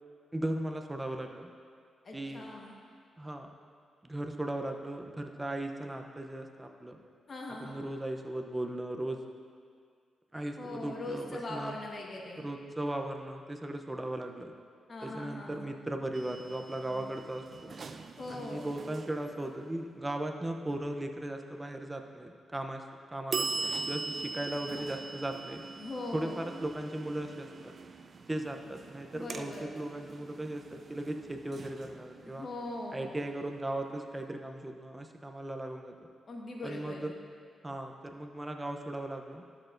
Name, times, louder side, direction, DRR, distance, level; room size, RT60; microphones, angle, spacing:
voice 1, 0.3-1.5 2.1-2.5 3.2-3.5 4.0-7.0 7.6-9.2 10.3-11.8 12.4-14.5 15.0-17.7 18.3-25.6 26.1-27.7 28.3-32.5 32.9-35.9 36.6-37.1 37.6-39.4, right 1 dB, 15° right, 4 dB, 0.7 m, -37 dB
voice 2, 2.0-2.7 7.3-7.8 10.6-12.5 14.9-15.7 18.2-18.7 25.8-26.4 29.1-29.7 32.2-33.1 36.3-37.1, left 2 dB, 45° left, -1 dB, 1.4 m, -41 dB
sound 1, 16.1-19.9 23.3-34.0, right 4 dB, 50° right, 0.4 m, -42 dB
12.0 x 6.5 x 2.6 m, 2.1 s
cardioid pair, 80°, 0 cm